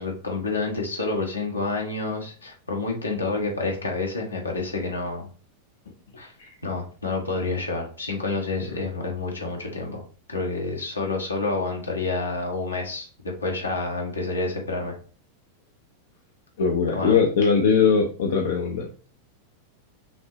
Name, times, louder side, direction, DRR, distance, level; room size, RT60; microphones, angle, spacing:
voice 1, 0.0-5.3 6.2-6.3 6.6-10.0 10.3-14.9 16.9-17.2, left 3 dB, 80° left, 0 dB, 1.2 m, -28 dB
voice 2, 16.6-19.1, left 5 dB, 60° left, 2 dB, 0.6 m, -21 dB
5.9 x 2.6 x 3.0 m, 0.39 s
figure-of-eight pair, 90°, 0 cm